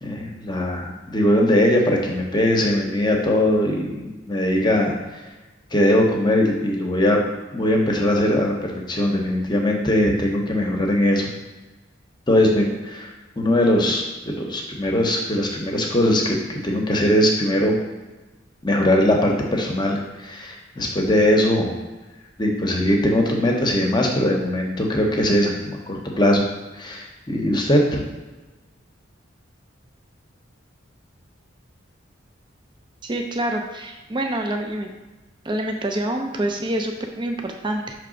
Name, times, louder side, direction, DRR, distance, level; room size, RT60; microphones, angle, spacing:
voice 1, 0.0-4.9 5.7-7.2 7.5-11.3 12.3-17.8 18.6-21.7 22.4-26.4 26.7-28.0, left 1 dB, 20° left, 0 dB, 0.9 m, -20 dB
voice 2, 33.0-34.9 35.4-37.9, right 1 dB, 25° right, 3 dB, 0.6 m, -26 dB
5.9 x 3.4 x 5.1 m, 1.1 s
head